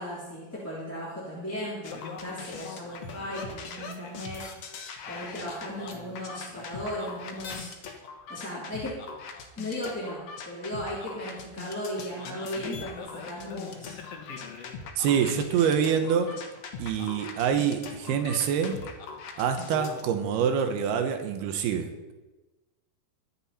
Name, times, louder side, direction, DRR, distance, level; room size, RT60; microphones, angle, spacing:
voice 1, 0.0-4.4 5.1-8.0 8.3-9.0 9.6-13.9, equal, 5° left, -9 dB, 2.8 m, -36 dB
sound 1, 1.8-20.0, left 5 dB, 60° left, 1.8 m, -40 dB
voice 2, 15.0-16.4 16.8-18.8 19.4-22.1, right 7 dB, 85° right, 7 dB, 3.2 m, -26 dB
22.5 x 7.8 x 4.3 m, 1.1 s
omnidirectional pair, 4.5 m